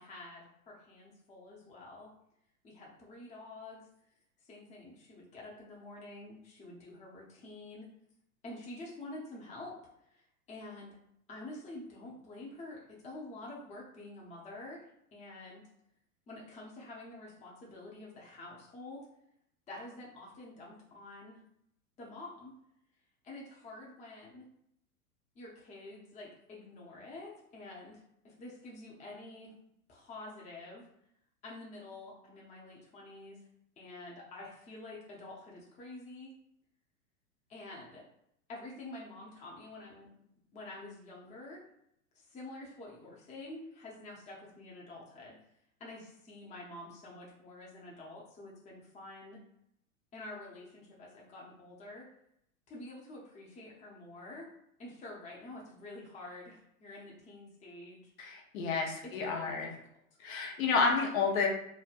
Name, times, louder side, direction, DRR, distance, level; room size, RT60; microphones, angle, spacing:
voice 1, 0.0-2.1 2.6-3.9 4.4-7.9 8.4-9.8 10.1-11.0 11.3-14.8 15.1-15.6 16.3-19.1 19.7-21.4 22.0-22.5 23.2-24.5 25.4-29.5 29.9-30.9 31.4-33.4 33.8-36.3 37.5-38.0 38.5-40.1 40.5-41.6 42.1-45.4 45.8-49.4 50.1-52.1 52.7-54.5 54.8-58.1 59.0-59.7, left 2 dB, 15° left, -4 dB, 0.7 m, -48 dB
voice 2, 58.2-59.7 60.2-61.5, left 4 dB, 65° left, 1 dB, 0.8 m, -30 dB
3.3 x 2.1 x 2.4 m, 0.75 s
hypercardioid pair, 105°, 44 cm